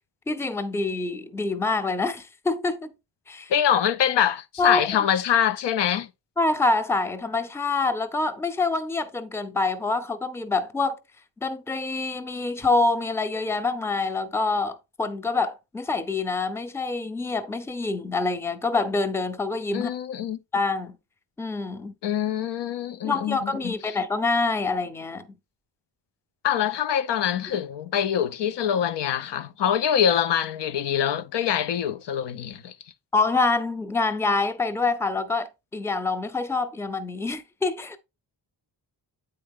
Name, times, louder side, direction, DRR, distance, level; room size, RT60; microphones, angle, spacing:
voice 1, 0.3-2.9 3.3-3.5 4.6-4.9 6.4-11.0 11.4-19.9 20.5-21.0 21.4-21.9 23.0-25.4 33.1-38.0, left 3 dB, 5° left, 0.5 m, -26 dB
voice 2, 3.5-6.1 19.7-20.4 22.0-23.7 26.4-32.7, left 9 dB, 75° left, 0.6 m, -24 dB
8.7 x 4.4 x 3.5 m
wide cardioid pair, 140°, 42 cm